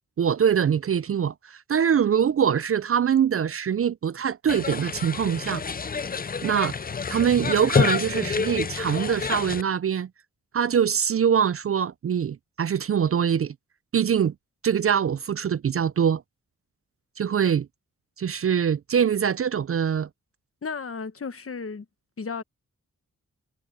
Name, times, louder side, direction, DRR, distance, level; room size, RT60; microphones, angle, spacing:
voice 1, 0.2-5.6 6.4-6.7 7.1-10.1 10.5-13.5 13.9-14.3 14.6-16.2 17.2-17.7 18.2-20.1, right 8 dB, 45° right, 0.4 m, -23 dB
sound 1, 4.5-9.6, left 5 dB, 30° left, 0.5 m, -28 dB
voice 2, 20.6-21.8 22.2-22.4, left 5 dB, 45° left, 1.2 m, -33 dB
cardioid pair, 80°, 31 cm